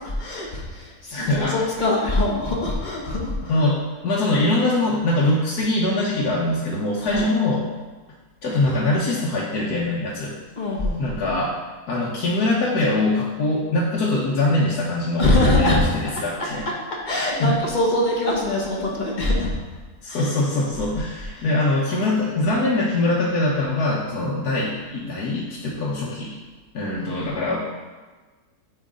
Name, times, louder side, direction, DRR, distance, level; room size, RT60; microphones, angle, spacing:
voice 1, 0.0-3.6 7.0-7.3 10.6-11.0 15.2-15.8 17.0-19.5 20.1-20.3 21.3-21.5 27.0-27.1, left 1 dB, 35° left, -2 dB, 1.1 m, -23 dB
voice 2, 1.1-1.6 3.5-7.7 8.4-10.3 11.0-11.6 11.9-16.7 17.4-17.6 20.0-26.3 26.7-27.6, left 2 dB, 85° left, -5 dB, 1.3 m, -23 dB
8.9 x 3.3 x 3.6 m, 1.3 s
omnidirectional pair, 1.6 m